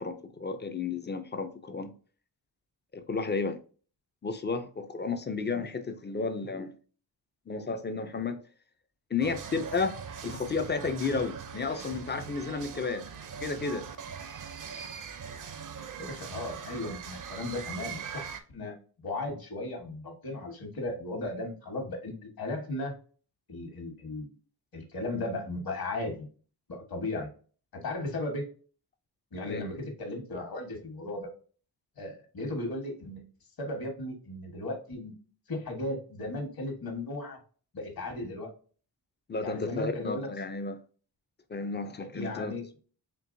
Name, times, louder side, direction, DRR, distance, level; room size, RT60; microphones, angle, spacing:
voice 1, 0.0-1.9 2.9-3.6 4.2-6.7 7.5-8.4 9.1-13.1 13.4-13.9 29.5-29.6 39.3-40.8 41.5-42.5, left 4 dB, 25° left, 0.4 m, -32 dB
sound 1, 9.2-18.4, right 7 dB, 50° right, 0.5 m, -41 dB
voice 2, 16.0-18.7 19.0-22.9 23.5-24.3 24.7-26.3 26.7-27.3 27.8-28.5 29.3-31.3 32.0-33.2 33.6-35.1 35.5-37.4 37.7-38.5 39.4-40.3 42.1-42.8, left 2 dB, 55° left, 1.4 m, -36 dB
4.5 x 3.3 x 2.5 m
wide cardioid pair, 180°, 43 cm